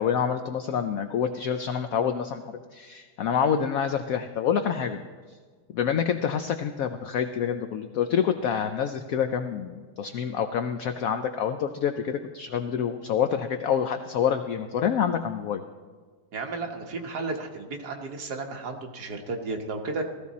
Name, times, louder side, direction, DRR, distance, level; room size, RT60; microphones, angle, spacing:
voice 1, 0.0-2.4 2.7-5.0 5.7-15.6, left 8 dB, 65° left, 8 dB, 0.9 m, -27 dB
voice 2, 16.3-20.0, right 3 dB, 70° right, 3 dB, 1.8 m, -33 dB
17.5 x 14.0 x 4.1 m, 1.5 s
omnidirectional pair, 1.8 m